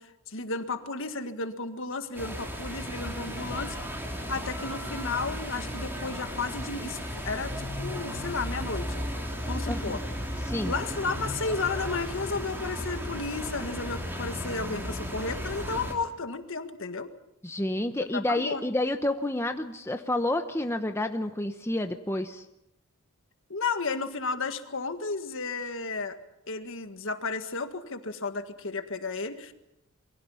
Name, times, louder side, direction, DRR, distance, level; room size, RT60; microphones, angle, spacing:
voice 1, 0.0-3.8 4.3-9.0 9.5-10.0 10.6-17.1 18.0-18.6 23.5-26.2 26.5-29.5, left 4 dB, 60° left, 8 dB, 1.8 m, -33 dB
sound 1, 2.1-15.9, equal, 10° right, 3.9 m, -35 dB
sound 2, 2.7-16.0, right 2 dB, 75° right, 3.7 m, -49 dB
voice 2, 9.7-10.0 10.5-10.7 17.4-22.4, left 1 dB, 10° left, 6 dB, 0.9 m, -29 dB
28.0 x 23.0 x 5.8 m, 0.86 s
head